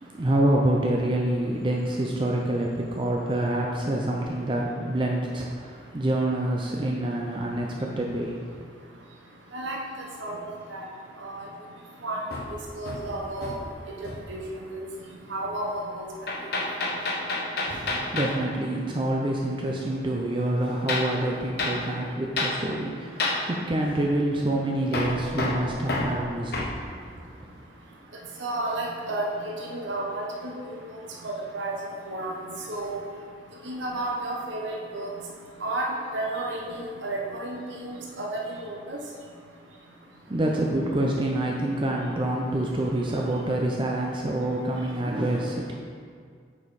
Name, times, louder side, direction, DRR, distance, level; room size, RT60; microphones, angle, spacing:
voice 1, 0.0-8.6 17.6-26.8 40.3-45.7, right 1 dB, 25° right, -1 dB, 0.5 m, -27 dB
Hammer, 12.3-13.8 14.0-14.4 16.3-18.4 20.9-21.1 21.6-21.8 22.4-22.6 23.2-23.5 24.9-26.8, left 2 dB, 55° left, 0.9 m, -29 dB
voice 2, 12.8-13.6 14.3-14.8 15.3-16.1 17.9-18.0 28.4-30.8 31.2-31.7 32.1-32.3 32.7-33.0 33.6-35.1 35.6-39.0, right 2 dB, 85° right, -2 dB, 1.0 m, -32 dB
8.5 x 5.1 x 4.1 m, 2.1 s
head